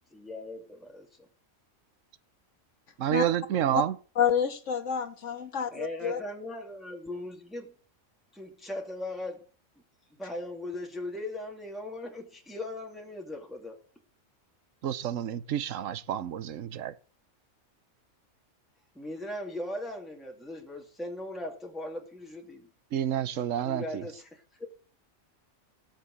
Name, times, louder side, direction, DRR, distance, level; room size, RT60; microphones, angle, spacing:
voice 1, 0.1-1.1 5.7-7.7 8.3-9.4 10.2-13.8 18.9-22.7 23.6-24.7, left 1 dB, ahead, 2.5 m, -39 dB
voice 2, 3.0-4.0 14.8-16.9 22.9-24.0, right 10 dB, 70° right, 1.2 m, -29 dB
voice 3, 4.2-6.2, left 7 dB, 60° left, 2.0 m, -28 dB
16.0 x 6.6 x 7.8 m
omnidirectional pair, 1.4 m